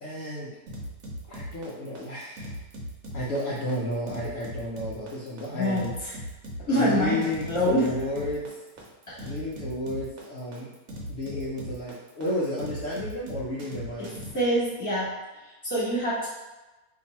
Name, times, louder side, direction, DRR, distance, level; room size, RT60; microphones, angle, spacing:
voice 1, 0.0-0.5 1.3-2.6 3.1-5.9 6.7-8.5 9.2-10.7 11.1-14.1, left 1 dB, 60° left, -7 dB, 0.9 m, -32 dB
sound 1, 0.7-14.3, equal, 65° right, 1.0 m, -39 dB
voice 2, 5.4-6.1 6.6-7.9 9.1-9.3 14.0-14.1 14.3-15.1 15.6-16.3, equal, 10° left, -8 dB, 1.2 m, -26 dB
2.8 x 2.6 x 4.1 m, 1.1 s
omnidirectional pair, 1.7 m